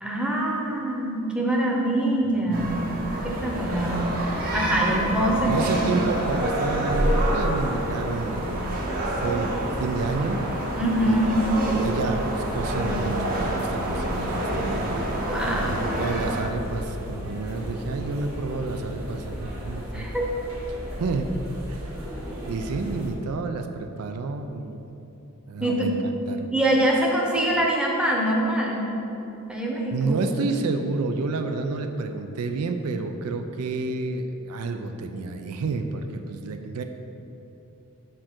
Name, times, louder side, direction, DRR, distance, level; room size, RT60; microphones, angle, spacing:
voice 1, 0.0-4.1 4.5-5.9 10.8-11.4 15.3-15.9 19.9-20.3 25.6-25.9 26.5-28.9 29.5-30.2, right 1 dB, 5° right, -2 dB, 0.7 m, -24 dB
sound 1, 2.5-16.4, right 1 dB, 40° right, 0.8 m, -28 dB
sound 2, 3.3-23.1, equal, 65° right, 1.2 m, -35 dB
voice 2, 4.9-8.8 9.2-9.5 9.8-10.5 11.1-15.1 15.7-20.1 21.0-21.3 21.7-21.9 22.5-24.8 25.5-26.5 29.9-36.8, right 3 dB, 90° right, 6 dB, 0.4 m, -30 dB
4.8 x 4.5 x 5.9 m, 2.9 s
head